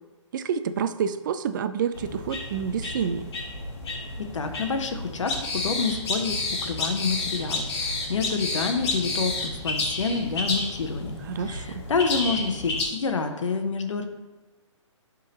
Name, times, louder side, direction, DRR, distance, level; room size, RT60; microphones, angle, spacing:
voice 1, 0.3-3.2 11.3-11.8, right 7 dB, 40° right, 11 dB, 0.4 m, -28 dB
sound 1, 1.9-12.9, left 2 dB, 55° left, 1.5 m, -31 dB
voice 2, 4.2-11.2 11.4-14.1, left 4 dB, 75° left, 6 dB, 0.9 m, -28 dB
9.9 x 3.8 x 3.0 m, 1.2 s
hypercardioid pair, 140°, 16 cm